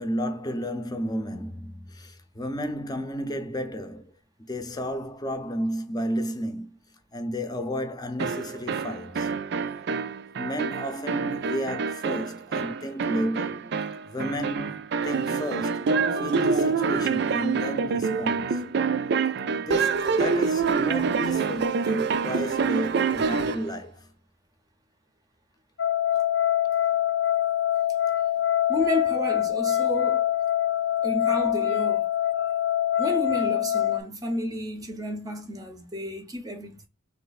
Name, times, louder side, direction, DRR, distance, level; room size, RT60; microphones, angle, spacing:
voice 1, 0.0-4.1 4.5-6.8 7.1-9.3 10.3-13.7 14.1-18.6 19.5-24.1, equal, 20° left, 0.7 m, -32 dB
sound 1, 8.2-23.7, right 5 dB, 60° right, 0.4 m, -26 dB
sound 2, 25.8-34.0, left 11 dB, 70° left, 0.5 m, -24 dB
voice 2, 28.7-30.3 31.0-32.0 33.0-36.9, equal, 20° right, 0.7 m, -31 dB
3.3 x 3.2 x 4.0 m
head